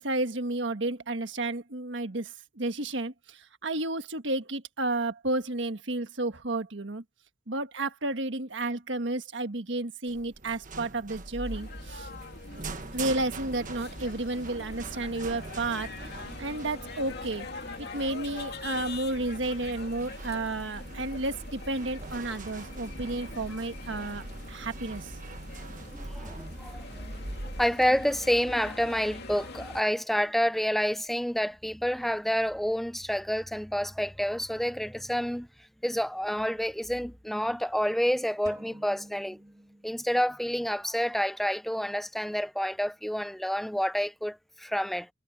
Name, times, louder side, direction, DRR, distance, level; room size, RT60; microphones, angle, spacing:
voice 1, 0.0-7.0 7.5-12.1 12.9-17.5 17.8-25.1, right 2 dB, 65° right, 1.6 m, -32 dB
sound 1, 10.1-27.6, right 2 dB, 45° right, 1.4 m, -42 dB
sound 2, 11.4-29.8, left 3 dB, 55° left, 2.5 m, -44 dB
voice 2, 25.9-26.8 27.4-35.5 35.8-39.4 39.8-45.1, equal, ahead, 0.4 m, -29 dB
sound 3, 38.5-40.5, right 1 dB, 20° right, 2.5 m, -50 dB
head